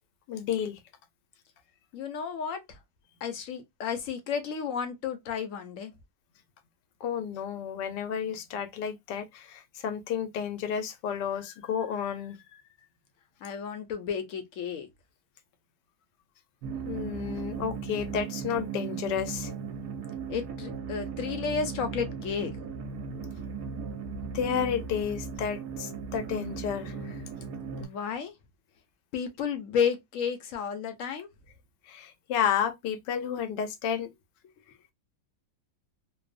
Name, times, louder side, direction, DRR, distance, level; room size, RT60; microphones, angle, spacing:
voice 1, 0.3-0.8 7.0-12.6 16.9-19.5 24.3-27.2 31.9-34.1, left 8 dB, 90° left, 1.2 m, -31 dB
voice 2, 1.9-2.8 3.2-5.9 13.4-14.9 20.3-22.5 27.8-28.3 29.1-31.3, left 6 dB, 65° left, 0.8 m, -32 dB
sound 1, 16.6-27.8, right 6 dB, 75° right, 1.1 m, -37 dB
2.9 x 2.0 x 2.3 m
omnidirectional pair, 1.8 m